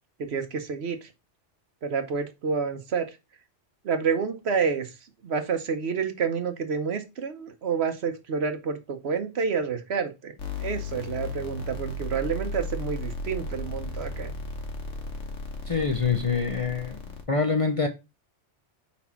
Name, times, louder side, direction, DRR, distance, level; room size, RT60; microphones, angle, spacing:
voice 1, 0.2-1.0 1.8-3.1 3.8-4.9 5.2-14.3, right 6 dB, 60° right, 1.1 m, -29 dB
sound 1, 10.4-17.2, left 2 dB, 90° left, 1.5 m, -35 dB
voice 2, 15.7-17.0 17.3-17.9, left 5 dB, 35° left, 0.6 m, -25 dB
4.8 x 4.2 x 5.7 m
omnidirectional pair, 1.2 m